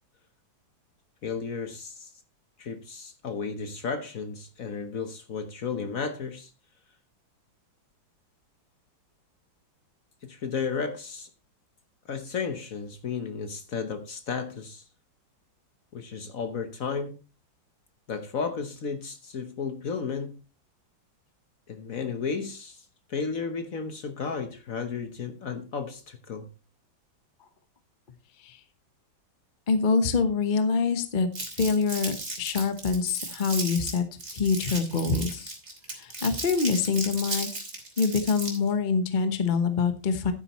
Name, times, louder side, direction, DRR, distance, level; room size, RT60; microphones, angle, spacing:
voice 1, 1.2-2.1 2.6-6.5 10.2-11.3 12.1-14.8 15.9-17.2 18.1-20.4 21.7-22.8 23.1-26.5, left 5 dB, 50° left, 1.2 m, -33 dB
voice 2, 29.7-31.3 31.6-34.1 34.3-35.5 36.0-37.5 38.0-40.3, left 5 dB, 35° left, 0.9 m, -25 dB
Crumpling crinkling, 31.3-38.7, right 2 dB, 35° right, 3.3 m, -35 dB
11.5 x 9.8 x 3.0 m
omnidirectional pair, 2.1 m